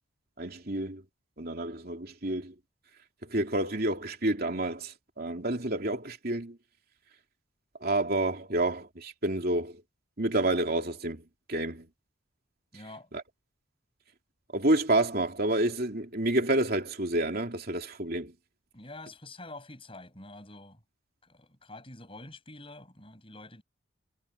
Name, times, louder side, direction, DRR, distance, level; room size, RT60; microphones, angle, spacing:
voice 1, 0.4-1.0 1.4-2.5 3.2-6.6 7.8-9.8 10.2-11.9 13.1-13.2 14.5-18.3, right 1 dB, 45° right, 3.1 m, -29 dB
voice 2, 12.7-13.1 18.7-20.8 21.2-23.6, left 2 dB, 25° left, 7.3 m, -47 dB
head